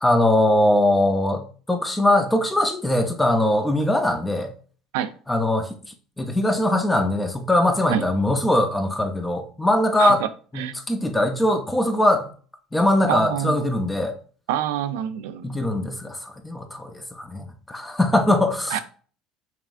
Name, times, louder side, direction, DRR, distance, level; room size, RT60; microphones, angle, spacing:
voice 1, 0.0-4.5 5.3-5.7 6.2-10.2 10.5-12.3 12.7-14.1 15.4-18.8, left 1 dB, 10° left, 0.7 m, -21 dB
voice 2, 13.1-13.5 14.5-15.7 18.7-18.8, right 11 dB, 85° right, 0.4 m, -26 dB
5.8 x 2.4 x 2.6 m
supercardioid pair, 90°, 0 cm